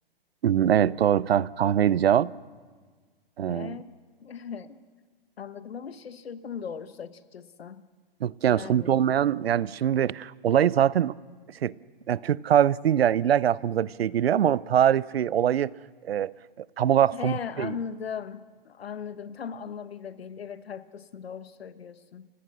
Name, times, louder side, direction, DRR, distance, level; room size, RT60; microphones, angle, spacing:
voice 1, 0.4-2.3 3.4-3.8 8.2-11.1 11.6-11.7 12.1-15.7 16.0-16.3 16.8-17.7, right 10 dB, 85° right, 0.6 m, -23 dB
voice 2, 3.5-3.9 4.2-4.8 5.4-7.8 8.5-9.1 17.1-22.3, left 7 dB, 85° left, 1.1 m, -38 dB
29.5 x 17.5 x 6.4 m
hypercardioid pair, 145°, 30 cm